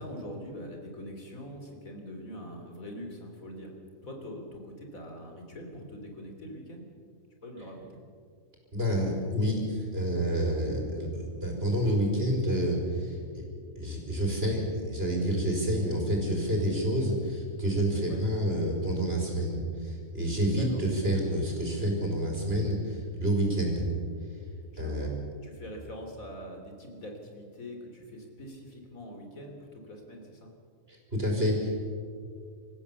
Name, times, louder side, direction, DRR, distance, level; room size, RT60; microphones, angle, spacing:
voice 1, 0.0-3.7 4.0-6.9 7.4-8.0 18.0-18.2 20.5-20.8 24.7-25.1 25.4-30.5, equal, 80° left, 2 dB, 3.8 m, -43 dB
voice 2, 8.7-13.4 13.7-23.9 24.8-25.1 30.9-31.8, equal, 45° right, 0 dB, 5.1 m, -28 dB
26.5 x 15.0 x 7.1 m, 2.3 s
omnidirectional pair, 1.4 m